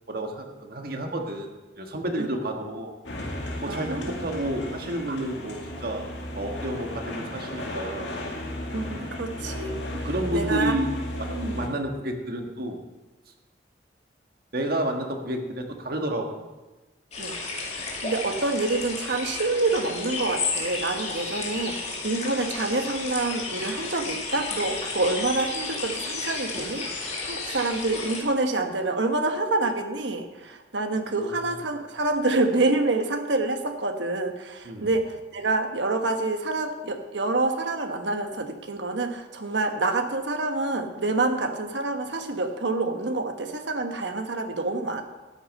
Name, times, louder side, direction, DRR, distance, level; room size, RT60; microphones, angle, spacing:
voice 1, 0.1-1.5 1.8-2.9 3.6-6.1 6.3-8.1 9.0-9.1 10.0-10.9 11.2-12.8 14.5-16.4 17.8-17.9 31.2-31.5 34.7-34.9, right 1 dB, 55° right, 3 dB, 1.6 m, -30 dB
sound 1, 3.0-11.7, left 1 dB, 80° left, 2.1 m, -34 dB
voice 2, 3.7-4.1 5.1-5.2 8.7-9.8 10.3-10.7 11.3-11.7 17.2-45.0, right 2 dB, 80° right, 6 dB, 1.2 m, -27 dB
sound 2, 17.1-28.2, left 4 dB, 40° left, 2.2 m, -32 dB
13.0 x 9.2 x 5.4 m, 1.2 s
head